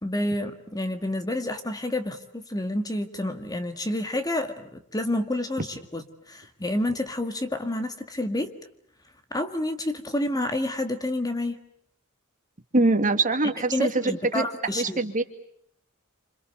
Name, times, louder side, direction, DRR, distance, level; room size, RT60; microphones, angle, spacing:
voice 1, 0.0-8.5 9.3-11.6 13.4-15.0, left 1 dB, 20° left, 8 dB, 1.9 m, -29 dB
voice 2, 12.7-14.4 14.7-15.2, right 2 dB, 35° right, 7 dB, 2.3 m, -23 dB
28.5 x 27.0 x 6.7 m, 0.68 s
head